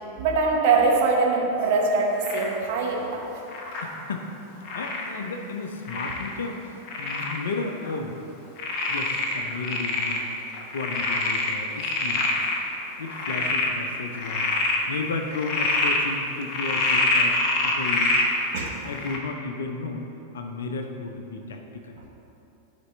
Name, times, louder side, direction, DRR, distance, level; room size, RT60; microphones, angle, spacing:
voice 1, 0.2-3.2 18.5-18.7, right 4 dB, 50° right, -1 dB, 1.2 m, -22 dB
Frog, 2.2-2.6 3.5-3.9 4.6-5.1 5.9-6.3 6.9-7.4 7.9-8.0 8.6-10.2 10.5-12.6 13.1-13.7 14.1-14.8 15.3-16.0 16.5-18.3 18.9-19.2, left 2 dB, 40° left, 0.9 m, -25 dB
voice 2, 3.8-6.6 7.0-8.2 8.9-10.3 10.7-12.4 13.0-14.5 14.9-18.2 18.8-20.1 20.3-22.0, left 3 dB, 65° left, 4 dB, 0.6 m, -33 dB
12.5 x 4.2 x 3.2 m, 2.8 s
figure-of-eight pair, 90°, 0 cm